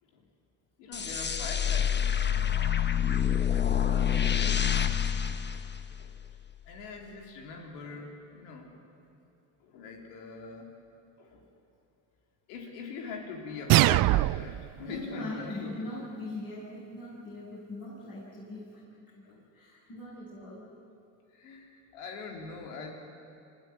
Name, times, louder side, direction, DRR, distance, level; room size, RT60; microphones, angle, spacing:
voice 1, 0.8-2.8 3.4-5.0 5.5-5.6 5.9-6.1 6.7-8.9 9.6-10.8 11.2-11.5 12.5-15.7 19.2-19.4 21.3-22.9, left 4 dB, 85° left, 2 dB, 3.9 m, -43 dB
sound 1, 0.9-6.3, left 9 dB, 20° left, 1.1 m, -27 dB
sound 2, 13.7-14.7, right 18 dB, 50° right, 0.4 m, -22 dB
voice 2, 14.8-19.2 19.5-20.7, left 2 dB, 45° left, -8 dB, 7.6 m, -41 dB
26.0 x 15.5 x 9.5 m, 2.6 s
supercardioid pair, 90°, 48 cm